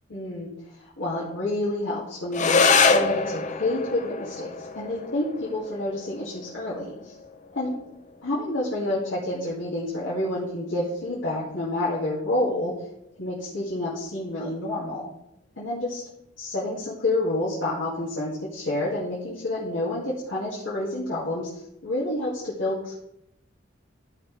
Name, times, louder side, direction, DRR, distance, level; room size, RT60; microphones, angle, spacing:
voice 1, 0.1-0.5 1.0-7.1 7.5-7.8 8.2-12.7 13.2-15.1 15.6-16.0 16.4-21.5 21.8-23.0, left 1 dB, 80° left, -8 dB, 2.2 m, -28 dB
sound 1, 2.3-11.3, left 4 dB, 40° left, 0.6 m, -27 dB
14.0 x 5.8 x 3.4 m, 0.82 s
head